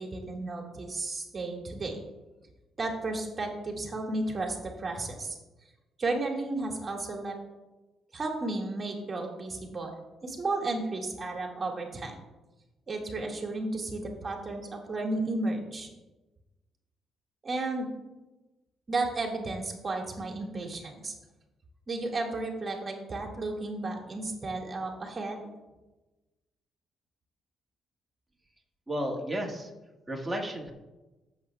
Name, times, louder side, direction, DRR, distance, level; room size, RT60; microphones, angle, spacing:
voice 1, 0.0-2.0 2.8-5.4 6.0-7.4 8.1-9.9 10.2-12.1 12.9-15.9 17.4-18.0 18.9-21.2 21.9-25.4, right 2 dB, 35° right, 1 dB, 1.9 m, -33 dB
voice 2, 28.9-29.7 30.1-30.7, equal, 10° right, 0 dB, 1.8 m, -32 dB
14.5 x 7.1 x 2.3 m, 1.1 s
cardioid pair, 90°, 0 cm